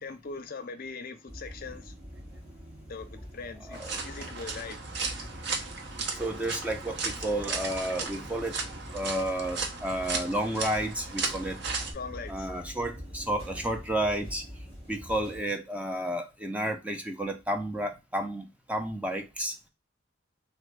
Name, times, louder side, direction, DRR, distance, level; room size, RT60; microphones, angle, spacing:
voice 1, 0.0-1.9 2.9-4.8 11.9-12.7, left 4 dB, 50° left, 0.5 m, -41 dB
sound 1, 1.3-15.4, equal, 25° right, 1.7 m, -45 dB
voice 2, 3.7-4.0 6.2-8.6 8.9-11.6 12.3-14.4 14.9-19.5, right 1 dB, 5° right, 0.4 m, -31 dB
sound 2, 3.7-11.9, right 4 dB, 65° right, 0.7 m, -35 dB
3.3 x 2.1 x 3.1 m
head